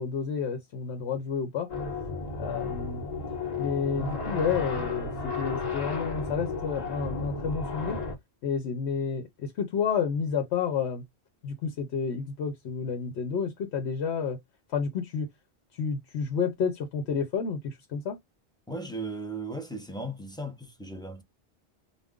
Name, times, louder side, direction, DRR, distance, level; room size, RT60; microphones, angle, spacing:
voice 1, 0.0-1.7 2.4-3.0 3.6-8.0 8.4-11.0 11.4-14.4 14.7-15.3 15.7-18.2, left 6 dB, 85° left, 1.0 m, -30 dB
sound 1, 1.7-8.1, left 3 dB, 40° left, 1.0 m, -33 dB
voice 2, 18.7-21.2, right 2 dB, 5° left, 0.5 m, -36 dB
2.4 x 2.1 x 3.5 m
omnidirectional pair, 1.1 m